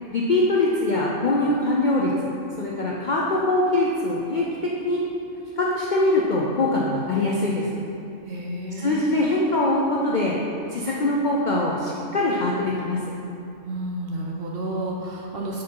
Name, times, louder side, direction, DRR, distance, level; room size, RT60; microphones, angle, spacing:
voice 1, 0.1-2.1 2.6-5.0 5.6-7.7 8.8-10.4 10.7-13.0, left 2 dB, 60° left, -4 dB, 0.5 m, -23 dB
voice 2, 8.3-9.0 13.6-15.6, right 1 dB, 55° right, -2 dB, 0.7 m, -31 dB
5.8 x 4.7 x 4.6 m, 2.7 s
omnidirectional pair, 1.4 m